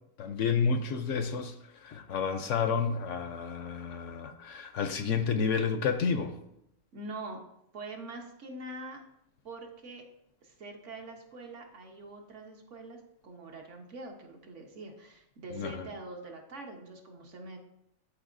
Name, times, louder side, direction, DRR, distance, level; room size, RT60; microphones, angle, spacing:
voice 1, 0.2-6.4 15.5-15.9, left 5 dB, 70° left, 8 dB, 0.8 m, -30 dB
voice 2, 6.9-7.4 7.7-9.0 9.4-10.1 10.4-17.6, right 2 dB, 60° right, 2 dB, 1.3 m, -44 dB
12.0 x 4.2 x 2.6 m, 0.81 s
omnidirectional pair, 1.5 m